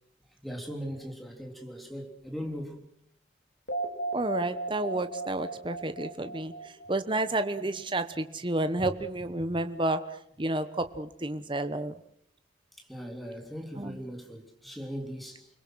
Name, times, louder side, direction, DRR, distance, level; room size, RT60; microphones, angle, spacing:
voice 1, 0.4-2.9 12.8-15.5, equal, ahead, 3.4 m, -39 dB
sound 1, 3.7-7.7, right 2 dB, 60° left, 3.9 m, -36 dB
voice 2, 4.1-11.9 13.8-14.0, right 2 dB, 25° right, 1.1 m, -31 dB
29.5 x 21.5 x 6.3 m
head